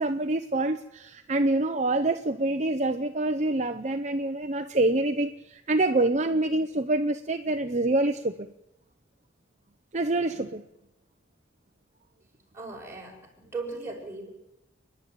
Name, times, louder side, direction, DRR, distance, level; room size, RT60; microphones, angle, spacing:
voice 1, 0.0-8.5 9.9-10.6, right 2 dB, 40° right, 7 dB, 0.8 m, -26 dB
voice 2, 12.5-14.3, right 3 dB, 15° right, -1 dB, 5.4 m, -38 dB
29.5 x 11.0 x 9.1 m, 0.89 s
head